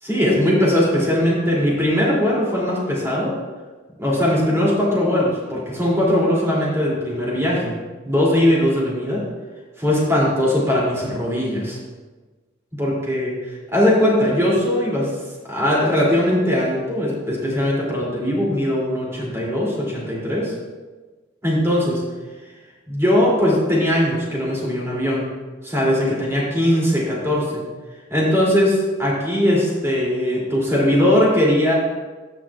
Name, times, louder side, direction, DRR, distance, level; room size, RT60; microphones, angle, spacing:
voice 1, 0.0-3.3 4.0-7.7 8.0-9.2 9.8-11.8 12.8-13.3 13.7-15.1 15.5-20.5 21.4-22.0 22.9-25.2 25.6-27.6 28.1-31.7, left 1 dB, 15° right, -6 dB, 2.6 m, -20 dB
15.0 x 6.2 x 2.3 m, 1.3 s
head